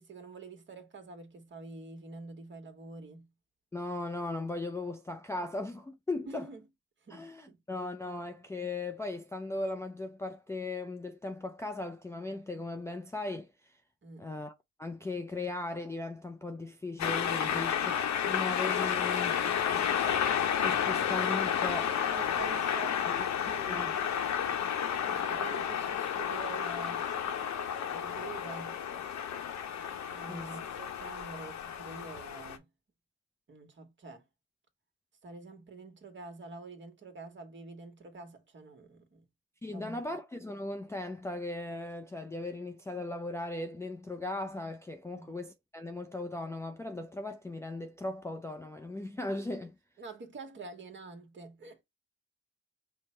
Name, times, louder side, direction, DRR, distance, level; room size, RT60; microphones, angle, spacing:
voice 1, 0.0-3.3 6.3-6.7 7.0-7.6 14.0-14.3 17.5-17.8 22.1-24.3 25.1-27.1 27.7-28.8 30.1-32.7 33.5-34.2 35.2-39.2 39.7-40.0 45.1-45.3 50.0-51.8, right 4 dB, 40° right, 1.3 m, -47 dB
voice 2, 3.7-6.5 7.1-13.8 14.2-18.0 18.2-19.4 20.6-22.0 23.1-23.9 30.3-30.5 39.6-49.8, left 2 dB, 10° left, 0.4 m, -38 dB
sound 1, 17.0-32.6, left 8 dB, 65° left, 0.8 m, -31 dB
5.1 x 2.1 x 4.3 m
cardioid pair, 90°, 30 cm